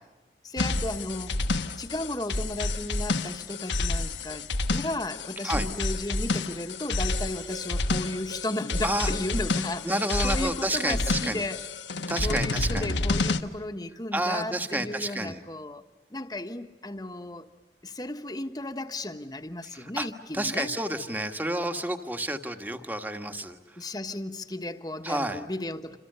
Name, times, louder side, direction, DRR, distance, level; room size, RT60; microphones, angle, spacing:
voice 1, 0.4-1.4 1.6-11.6 12.2-15.8 16.1-17.5 17.8-20.8 23.8-26.0, left 1 dB, 20° left, 1.2 m, -34 dB
sound 1, 0.6-13.4, left 3 dB, 85° left, 1.3 m, -29 dB
voice 2, 9.8-11.4 12.1-12.9 14.1-15.4 19.7-20.1 20.3-23.8 25.0-25.4, right 1 dB, 10° right, 1.4 m, -30 dB
27.5 x 27.5 x 6.8 m
head